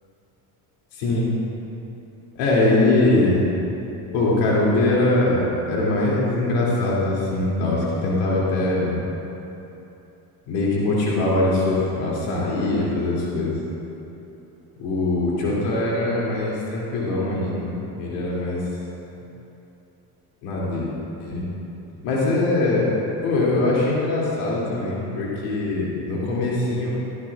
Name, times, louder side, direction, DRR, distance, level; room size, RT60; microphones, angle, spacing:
voice 1, 0.9-1.3 2.3-3.5 4.1-5.4 5.7-9.0 10.5-13.6 14.8-18.6 20.4-20.9 21.2-21.4 22.0-22.9 23.2-26.9, left 2 dB, 85° left, -6 dB, 2.8 m, -22 dB
17.0 x 11.5 x 2.4 m, 3.0 s
supercardioid pair, 70°, 48 cm